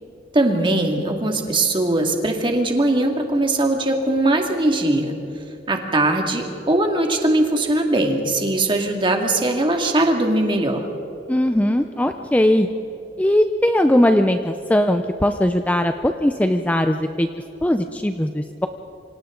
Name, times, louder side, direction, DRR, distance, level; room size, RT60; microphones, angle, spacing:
voice 1, 0.3-5.1 5.7-10.8, right 2 dB, 30° right, 2 dB, 2.3 m, -20 dB
voice 2, 11.3-12.7 13.2-17.3 17.6-18.7, left 1 dB, 10° left, 7 dB, 0.5 m, -19 dB
27.5 x 25.5 x 3.9 m, 2.9 s
head